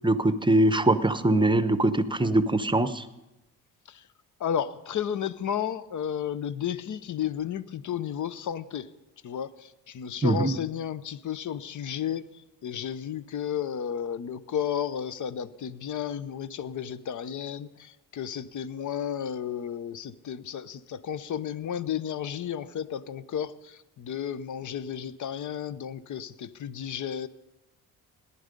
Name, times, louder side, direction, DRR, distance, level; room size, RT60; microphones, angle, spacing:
voice 1, 0.0-3.0 10.2-10.5, right 1 dB, 15° right, 12 dB, 0.8 m, -22 dB
voice 2, 4.4-8.9 9.2-27.3, left 9 dB, 55° left, 16 dB, 0.8 m, -33 dB
18.5 x 11.0 x 5.3 m, 0.98 s
cardioid pair, 85°, 36 cm